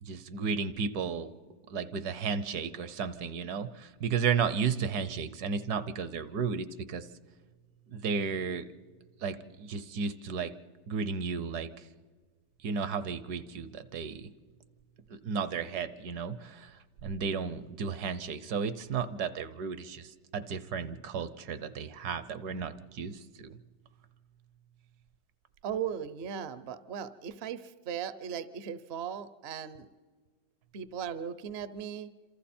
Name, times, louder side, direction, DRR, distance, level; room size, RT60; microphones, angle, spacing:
voice 1, 0.0-1.3 1.7-7.1 7.9-8.7 9.2-10.5 10.9-11.9 12.6-14.3 15.1-23.5, right 6 dB, 70° right, 14 dB, 1.3 m, -33 dB
voice 2, 25.6-29.9 30.7-32.1, right 8 dB, 55° right, 14 dB, 0.7 m, -37 dB
27.5 x 27.0 x 4.3 m, 1.5 s
omnidirectional pair, 1.8 m